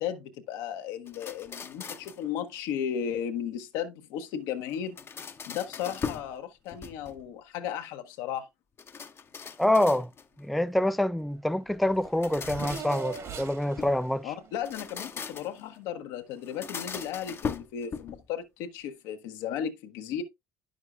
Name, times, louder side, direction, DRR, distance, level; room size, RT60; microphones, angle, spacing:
voice 1, 0.0-5.0 5.5-8.5 14.2-20.2, left 9 dB, 75° left, 1.0 m, -35 dB
sound 1, 1.1-2.3 4.7-6.3 6.7-7.3 8.8-10.4 12.0-14.0 14.5-15.7 16.4-18.3, left 6 dB, 40° left, 0.8 m, -39 dB
voice 2, 9.6-10.1 10.4-14.3, left 1 dB, ahead, 0.3 m, -26 dB
Race car auto racing / Accelerating revving vroom, 11.3-11.4 11.6-15.6, right 7 dB, 50° right, 1.7 m, -42 dB
9.8 x 6.4 x 2.4 m
hypercardioid pair, 70°, 7 cm